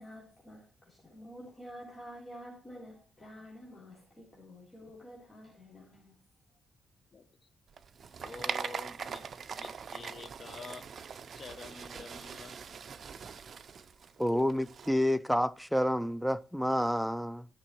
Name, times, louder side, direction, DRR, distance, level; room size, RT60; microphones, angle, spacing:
voice 1, 0.0-6.1, equal, 20° left, 3.7 m, -49 dB
sound 1, 7.7-14.9, right 6 dB, 50° right, 0.6 m, -42 dB
voice 2, 8.2-9.2 9.6-10.9 11.3-12.6, left 4 dB, 40° left, 1.0 m, -47 dB
voice 3, 14.2-17.5, equal, ahead, 0.5 m, -29 dB
14.0 x 6.3 x 4.5 m
cardioid pair, 130°, 0 cm